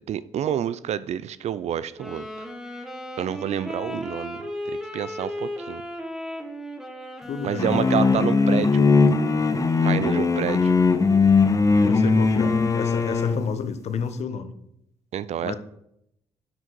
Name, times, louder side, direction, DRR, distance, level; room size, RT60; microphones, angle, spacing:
voice 1, 0.1-2.5 3.2-4.4 4.9-5.8 7.4-8.9 9.8-10.7 15.1-15.6, right 9 dB, 65° right, 16 dB, 0.5 m, -28 dB
Wind instrument woodwind instrument, 1.9-8.8, left 1 dB, 5° right, 1.5 m, -36 dB
voice 2, 7.3-7.8 11.8-14.5 15.4-15.6, left 6 dB, 65° left, 10 dB, 0.9 m, -30 dB
sound 1, 7.6-13.5, left 4 dB, 25° left, 0.8 m, -19 dB
7.5 x 6.2 x 4.6 m, 0.77 s
supercardioid pair, 65°, 12 cm